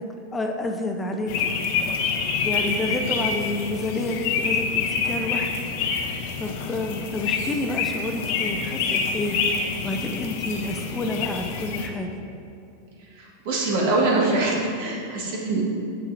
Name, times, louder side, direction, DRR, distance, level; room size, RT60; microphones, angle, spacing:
voice 1, 0.3-1.5 2.4-5.5 6.4-9.4 9.8-12.1, left 2 dB, 15° left, 3 dB, 0.5 m, -29 dB
sound 1, 1.3-11.9, left 5 dB, 60° left, 0.6 m, -27 dB
voice 2, 13.4-15.6, right 2 dB, 65° right, -3 dB, 1.5 m, -23 dB
7.0 x 6.3 x 2.5 m, 2.6 s
hypercardioid pair, 110°, 0 cm